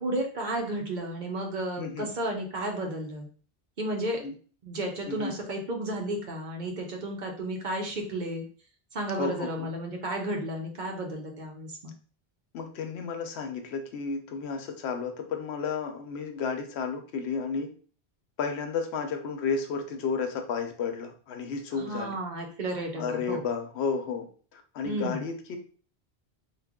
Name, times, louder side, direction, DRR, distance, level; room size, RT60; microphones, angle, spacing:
voice 1, 0.0-3.3 3.8-4.2 4.6-8.4 8.9-11.9 21.7-23.4 24.8-25.2, right 1 dB, 50° right, 1 dB, 0.7 m, -33 dB
voice 2, 1.8-2.1 4.2-4.3 5.1-5.3 9.2-9.7 12.5-17.7 18.4-22.2 23.0-24.3 24.5-25.6, left 5 dB, 85° left, 5 dB, 0.9 m, -32 dB
3.2 x 2.1 x 3.5 m, 0.41 s
omnidirectional pair, 1.1 m